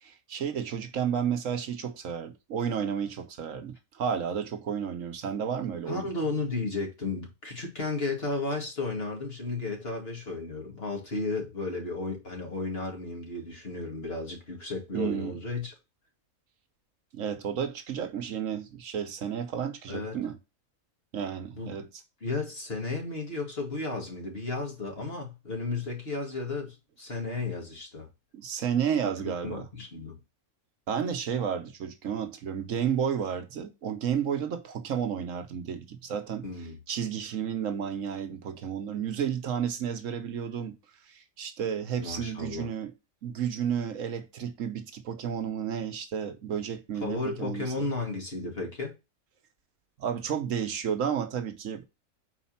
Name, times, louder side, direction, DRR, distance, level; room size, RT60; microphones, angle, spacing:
voice 1, 0.0-6.1 14.9-15.4 17.1-20.4 21.1-21.9 28.3-29.7 30.9-36.4 36.9-40.8 41.1-42.9 43.2-47.6 50.0-51.8, right 8 dB, 70° right, 1.2 m, -32 dB
voice 2, 5.9-15.7 19.9-20.2 21.6-21.8 22.2-28.1 29.2-30.2 36.4-36.8 42.0-42.7 47.0-48.9, left 3 dB, 45° left, 2.2 m, -33 dB
5.0 x 4.2 x 5.6 m
omnidirectional pair, 1.4 m